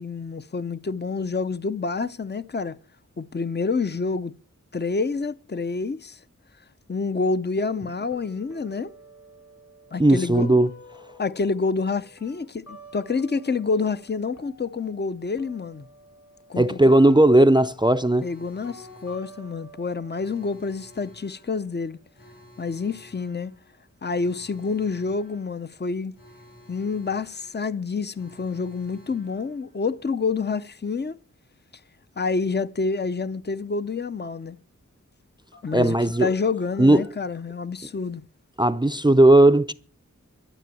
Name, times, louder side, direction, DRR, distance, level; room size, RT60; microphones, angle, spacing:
voice 1, 0.0-2.8 3.2-4.3 4.7-6.2 6.9-8.9 9.9-10.5 11.2-15.9 16.5-16.8 18.2-22.0 22.6-23.5 24.0-26.1 26.7-31.2 32.2-34.6 35.6-38.2, left 4 dB, 35° left, 0.6 m, -28 dB
sound 1, 8.1-14.1 14.3-22.1, equal, 60° left, 4.5 m, -50 dB
voice 2, 10.0-10.7 16.6-18.3 35.7-36.3 36.8-37.1 38.6-39.7, right 1 dB, 15° right, 0.5 m, -16 dB
Alarm, 18.1-30.1 35.5-37.1, left 1 dB, 85° left, 7.7 m, -52 dB
12.5 x 6.9 x 9.1 m
wide cardioid pair, 45°, 32 cm